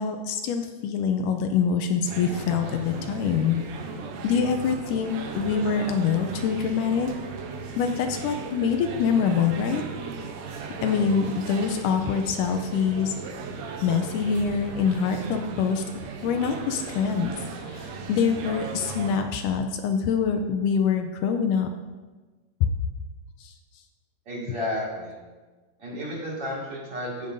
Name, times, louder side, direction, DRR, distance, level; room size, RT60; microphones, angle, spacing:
voice 1, 0.0-3.6 4.2-7.1 7.8-9.8 10.8-13.1 13.8-15.8 16.2-17.3 17.7-21.7 22.6-22.7, left 6 dB, 80° left, 6 dB, 2.1 m, -25 dB
sound 1, 2.0-19.2, right 4 dB, 75° right, 1.7 m, -36 dB
voice 2, 24.3-25.2 25.8-27.3, left 1 dB, 45° right, -6 dB, 3.0 m, -32 dB
16.0 x 5.4 x 2.6 m, 1.3 s
omnidirectional pair, 3.8 m